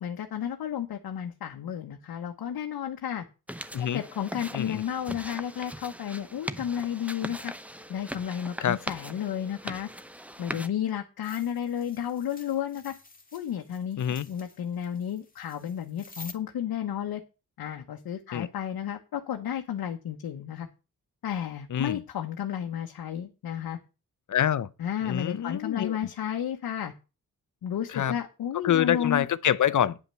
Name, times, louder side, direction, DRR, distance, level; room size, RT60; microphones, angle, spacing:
voice 1, 0.0-3.2 3.8-7.5 7.9-9.9 10.4-12.9 13.3-14.0 14.3-17.2 17.6-20.7 21.2-23.8 24.8-26.9 27.6-29.2, left 9 dB, 80° left, 1.1 m, -32 dB
sound 1, 3.5-10.7, equal, 5° right, 0.8 m, -40 dB
sound 2, 11.2-16.3, left 4 dB, 25° left, 1.9 m, -50 dB
voice 2, 14.0-14.3 18.3-18.5 21.7-22.0 24.3-24.7 25.0-26.0 27.9-28.2 28.6-30.0, left 10 dB, 55° left, 0.8 m, -26 dB
9.7 x 5.3 x 7.5 m
cardioid pair, 65°, 36 cm